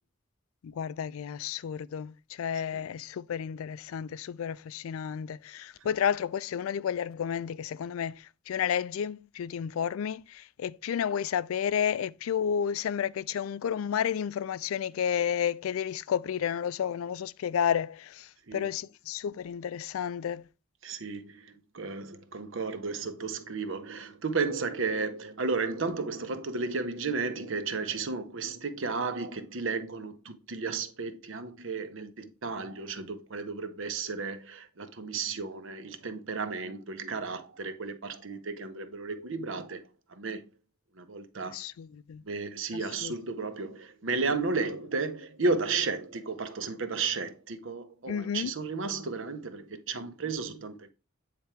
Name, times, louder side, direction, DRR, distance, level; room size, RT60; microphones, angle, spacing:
voice 1, 0.6-20.4 41.5-42.2 42.7-43.1 48.1-48.5, left 8 dB, 85° left, 0.3 m, -31 dB
voice 2, 20.8-39.8 40.1-40.4 41.0-41.6 42.3-50.9, right 4 dB, 65° right, 0.8 m, -33 dB
8.7 x 3.4 x 4.4 m
head